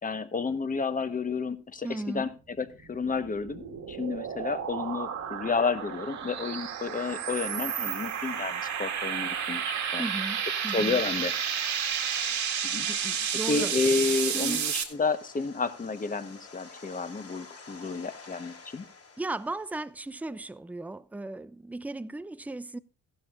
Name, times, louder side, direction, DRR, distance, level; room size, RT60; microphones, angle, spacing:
voice 1, 0.0-2.3 2.6-10.0 10.7-11.3 12.6-12.9 13.4-18.8, left 4 dB, 25° left, 1.2 m, -31 dB
voice 2, 1.8-2.3 10.0-11.0 12.9-13.7 14.3-14.6 19.2-22.8, right 2 dB, 5° right, 0.5 m, -36 dB
sound 1, 2.8-14.8, right 8 dB, 65° right, 2.0 m, -31 dB
sound 2, 14.0-19.9, left 4 dB, 50° left, 4.7 m, -50 dB
14.5 x 12.0 x 2.5 m
cardioid pair, 90°, 30 cm